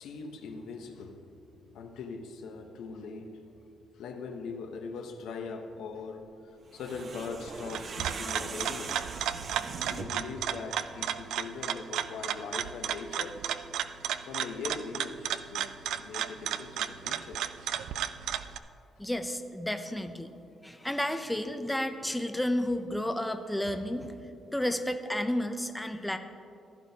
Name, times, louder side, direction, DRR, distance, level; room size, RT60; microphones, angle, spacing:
voice 1, 0.0-1.4 1.7-3.5 4.0-6.3 6.7-9.0 9.9-13.4 14.3-15.7 16.0-17.4, left 4 dB, 90° left, 5 dB, 0.9 m, -41 dB
sound 1, 6.7-10.3, right 4 dB, 45° right, 0.8 m, -41 dB
sound 2, 7.5-18.6, right 9 dB, 85° right, 0.4 m, -34 dB
voice 2, 19.0-20.3 20.6-24.1 24.5-26.2, left 1 dB, 5° left, 6 dB, 0.5 m, -31 dB
15.5 x 11.5 x 2.8 m, 2.6 s
cardioid pair, 130°, 0 cm